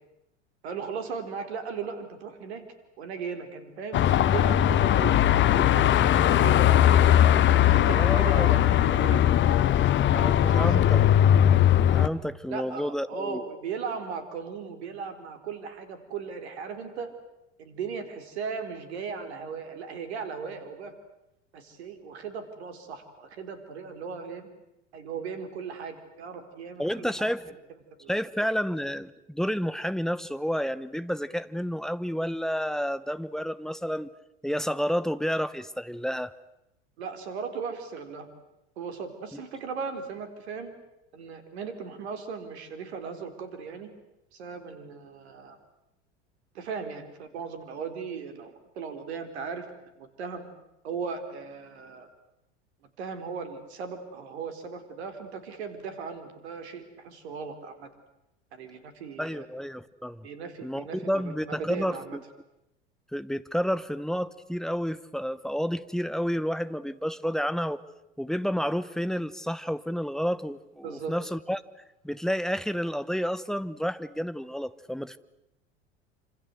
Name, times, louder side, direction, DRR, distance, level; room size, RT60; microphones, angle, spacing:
voice 1, 0.6-2.6 3.0-5.2 5.5-7.2 7.6-9.4 9.8-10.1 10.4-10.8 12.5-17.1 17.6-20.9 21.5-24.5 24.9-27.3 28.0-28.1 37.0-38.3 38.8-40.7 41.1-43.9 44.3-45.6 46.5-49.7 50.0-50.5 50.8-52.1 53.0-57.9 58.5-59.5 60.2-62.2 70.8-71.2, right 6 dB, 65° right, 8 dB, 4.3 m, -37 dB
Car passing by / Traffic noise roadway noise / Engine, 3.9-12.1, left 11 dB, 35° left, 1.2 m, -20 dB
voice 2, 7.9-8.6 10.1-11.0 11.9-13.4 26.8-27.5 28.1-34.1 34.4-36.3 39.3-39.4 59.2-60.3 60.6-62.2 63.1-67.8 68.2-71.6 72.0-75.2, equal, ahead, 14 dB, 1.0 m, -30 dB
27.0 x 26.0 x 8.0 m, 0.87 s
figure-of-eight pair, 80°, 35 cm